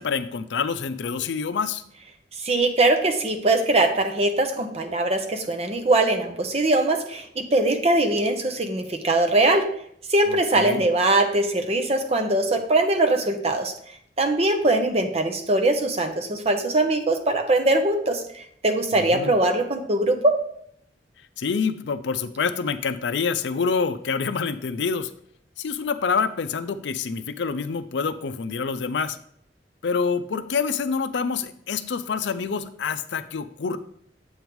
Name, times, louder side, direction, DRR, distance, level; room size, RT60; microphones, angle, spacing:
voice 1, 0.0-1.8 10.3-10.8 18.9-19.4 21.4-25.1 25.6-29.2 29.8-33.8, left 5 dB, 80° left, 12 dB, 0.5 m, -27 dB
voice 2, 2.4-9.7 10.1-13.7 14.2-18.2 18.6-20.4, right 2 dB, 35° right, 5 dB, 0.8 m, -21 dB
8.0 x 3.1 x 5.2 m, 0.68 s
head